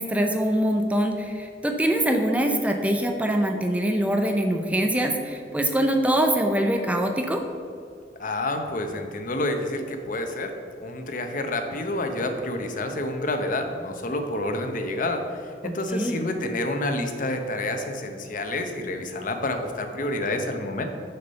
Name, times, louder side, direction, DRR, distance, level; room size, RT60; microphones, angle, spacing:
voice 1, 0.0-7.4 15.9-16.2, right 1 dB, 10° right, 4 dB, 0.5 m, -23 dB
voice 2, 8.2-10.5 10.8-15.2 15.6-20.8, left 1 dB, 50° left, 5 dB, 0.8 m, -28 dB
6.6 x 6.0 x 5.3 m, 2.4 s
head